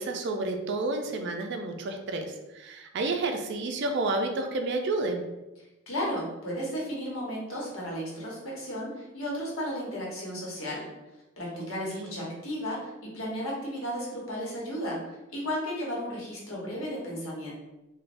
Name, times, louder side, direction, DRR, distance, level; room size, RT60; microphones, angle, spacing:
voice 1, 0.0-5.2 11.6-12.3, right 2 dB, 55° right, 5 dB, 0.4 m, -31 dB
voice 2, 5.9-10.9 11.4-17.5, equal, 90° left, -4 dB, 1.0 m, -34 dB
3.3 x 2.2 x 2.5 m, 1.0 s
head